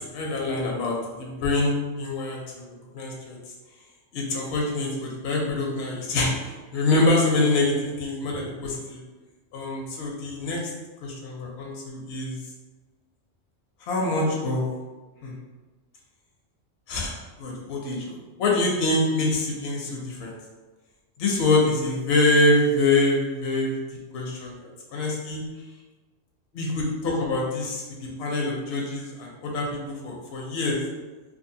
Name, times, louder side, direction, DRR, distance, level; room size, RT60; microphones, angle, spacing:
voice 1, 0.0-2.7 2.9-3.4 4.1-9.0 9.5-10.7 11.0-12.4 13.8-14.7 15.2-15.3 16.9-20.3 21.2-23.8 24.1-25.4 26.5-30.8, left 2 dB, 65° left, -2 dB, 0.7 m, -25 dB
2.6 x 2.4 x 2.6 m, 1.2 s
omnidirectional pair, 1.3 m